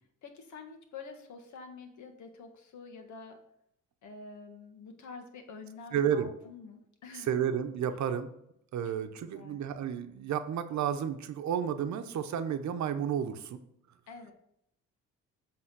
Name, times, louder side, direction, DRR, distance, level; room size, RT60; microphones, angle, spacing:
voice 1, 0.2-3.4 4.0-7.3 8.8-8.9 9.2-9.6 14.1-14.3, left 4 dB, 70° left, 5 dB, 1.5 m, -47 dB
voice 2, 5.9-6.3 7.3-8.3 8.7-13.6, right 8 dB, 65° right, 9 dB, 0.9 m, -31 dB
7.9 x 3.6 x 6.1 m, 0.76 s
cardioid pair, 90°, 30 cm